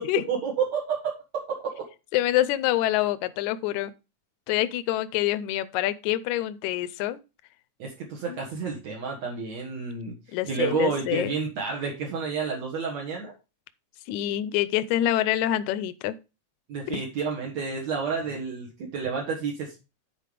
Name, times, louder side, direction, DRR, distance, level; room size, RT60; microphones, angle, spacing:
voice 1, 0.3-1.8 7.8-10.1 10.4-13.3 16.7-19.7, right 5 dB, 60° right, 2.8 m, -30 dB
voice 2, 2.1-3.9 4.5-7.2 8.3-8.4 10.3-11.3 14.1-16.2 16.9-17.0, left 14 dB, 80° left, 1.9 m, -26 dB
9.2 x 4.8 x 5.0 m
omnidirectional pair, 3.5 m